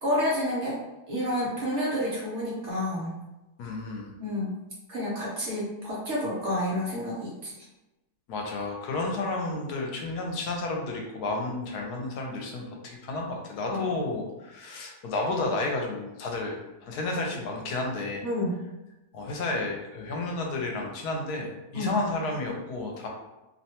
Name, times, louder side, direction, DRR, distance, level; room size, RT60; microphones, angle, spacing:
voice 1, 0.0-0.8 1.1-3.1 4.2-4.5 4.9-7.5 13.6-13.8 18.2-18.6 21.7-22.0, left 1 dB, 55° right, -6 dB, 0.9 m, -29 dB
voice 2, 3.6-4.1 8.3-18.2 19.1-23.1, left 2 dB, 80° left, 1 dB, 1.1 m, -31 dB
2.8 x 2.2 x 2.8 m, 1.0 s
omnidirectional pair, 1.7 m